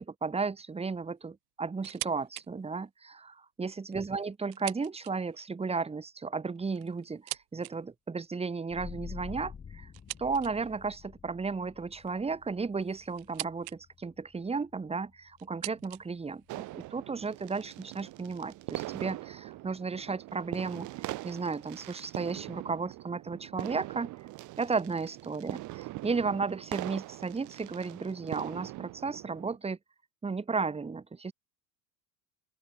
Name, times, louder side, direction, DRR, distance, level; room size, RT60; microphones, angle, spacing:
voice 1, 0.0-9.9 10.2-20.9 21.2-24.1 24.6-25.6 26.0-29.8 30.2-31.3, right 4 dB, 15° right, 1.6 m, -34 dB
sound 1, 1.8-2.5 2.9-3.0 3.7-5.4 6.4-7.8 9.9-10.8 12.0-13.8 14.1-14.6 15.4-16.8, right 29 dB, 60° right, 2.1 m, -43 dB
sound 2, 8.7-19.9, left 6 dB, 20° left, 1.5 m, -50 dB
sound 3, 16.5-29.6, right 19 dB, 40° right, 0.9 m, -42 dB
open air
hypercardioid pair, 90°, 46 cm